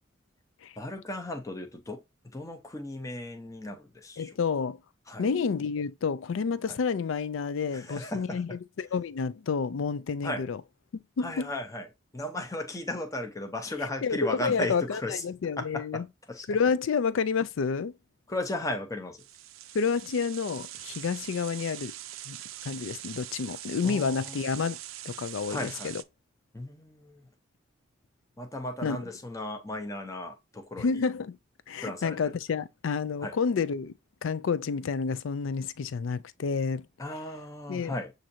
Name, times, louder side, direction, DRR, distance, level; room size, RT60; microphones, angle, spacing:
voice 1, 0.8-4.4 5.1-5.3 6.7-6.8 7.7-8.4 10.2-10.5 11.2-11.9 12.1-15.2 15.6-16.5 18.3-19.2 23.8-24.4 25.5-25.9 26.5-27.3 28.4-31.0 31.8-32.3 33.2-33.4 37.0-38.1, left 1 dB, 15° left, 0.7 m, -36 dB
voice 2, 4.2-4.8 5.2-10.6 11.2-11.5 14.0-16.0 16.5-17.9 19.7-21.9 22.3-22.4 22.6-24.8 25.0-26.0 28.8-29.0 30.8-31.4 31.7-33.9 34.2-36.9 37.7-37.9, left 5 dB, 75° left, 0.4 m, -29 dB
sound 1, 19.2-26.0, right 13 dB, 90° right, 0.4 m, -42 dB
7.5 x 2.6 x 2.7 m
head